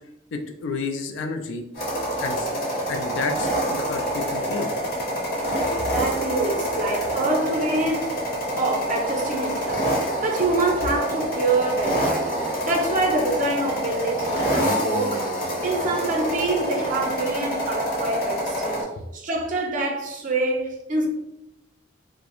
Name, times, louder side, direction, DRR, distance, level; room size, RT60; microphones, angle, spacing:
voice 1, 0.3-1.6 2.2-2.6 2.9-4.7 19.0-19.1, left 4 dB, 75° left, 0.3 m, -31 dB
sound 1, 1.7-18.8, right 1 dB, 50° left, 0.8 m, -26 dB
voice 2, 5.7-8.1 8.6-15.3 15.6-18.9 19.1-21.1, right 2 dB, 45° right, 0.5 m, -26 dB
2.3 x 2.0 x 2.9 m
head